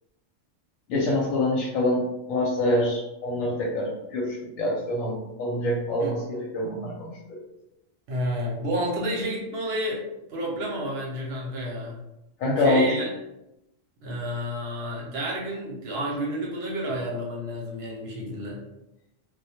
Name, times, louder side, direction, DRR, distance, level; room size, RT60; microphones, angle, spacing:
voice 1, 0.9-7.4 12.4-12.8, left 1 dB, 85° left, -3 dB, 1.0 m, -26 dB
voice 2, 8.1-10.0 10.3-12.0 12.6-13.1 14.0-18.6, equal, 60° right, -2 dB, 0.8 m, -30 dB
2.2 x 2.1 x 2.8 m, 0.91 s
omnidirectional pair, 1.4 m